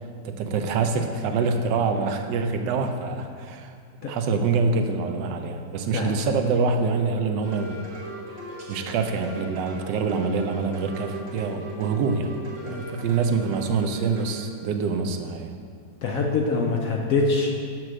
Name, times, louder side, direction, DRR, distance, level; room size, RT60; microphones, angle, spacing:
voice 1, 0.2-3.7 4.0-7.9 8.7-12.4 12.6-15.6, right 4 dB, 85° right, 6 dB, 1.2 m, -25 dB
sound 1, 7.4-14.3, right 1 dB, 40° right, 1.3 m, -39 dB
voice 2, 16.0-17.5, left 3 dB, 65° left, 0 dB, 0.8 m, -24 dB
7.4 x 3.1 x 6.2 m, 2.2 s
omnidirectional pair, 1.9 m